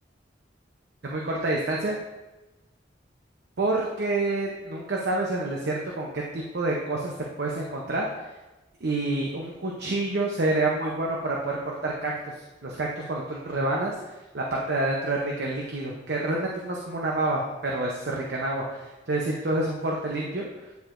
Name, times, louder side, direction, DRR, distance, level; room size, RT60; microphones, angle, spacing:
voice 1, 1.0-2.0 3.6-7.1 7.4-8.3 8.8-12.3 12.6-14.0 14.3-20.5, right 2 dB, 60° right, -2 dB, 0.7 m, -28 dB
9.2 x 4.6 x 2.6 m, 1.1 s
head